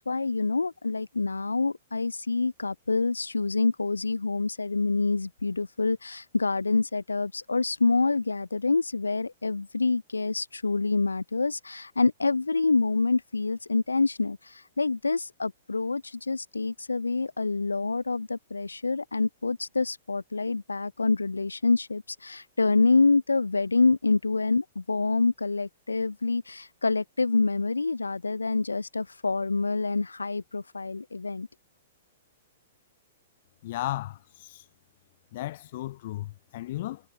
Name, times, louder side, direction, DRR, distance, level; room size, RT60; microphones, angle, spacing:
voice 1, 0.0-31.5, left 3 dB, 75° left, 1.7 m, -26 dB
voice 2, 33.6-34.6 35.3-37.0, left 15 dB, 45° left, 7.8 m, -35 dB
figure-of-eight pair, 105°, 0 cm